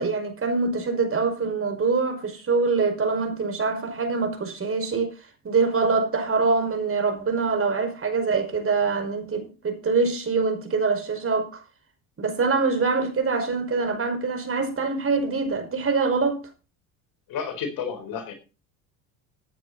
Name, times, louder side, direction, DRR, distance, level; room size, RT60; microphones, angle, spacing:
voice 1, 0.0-5.1 5.4-11.6 12.2-16.4, right 4 dB, 35° right, 5.4 m, -24 dB
voice 2, 17.3-18.3, left 6 dB, 60° left, 4.5 m, -31 dB
15.5 x 9.0 x 4.2 m
hypercardioid pair, 75°, 40 cm